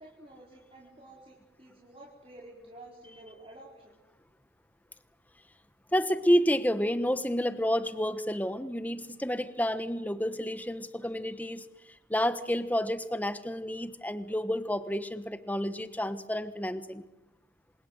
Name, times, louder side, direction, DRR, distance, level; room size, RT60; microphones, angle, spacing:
voice 1, 0.0-4.0, right 1 dB, 35° right, -2 dB, 4.7 m, -51 dB
voice 2, 5.9-17.0, equal, 10° left, 12 dB, 1.2 m, -30 dB
27.5 x 27.0 x 8.0 m, 0.95 s
head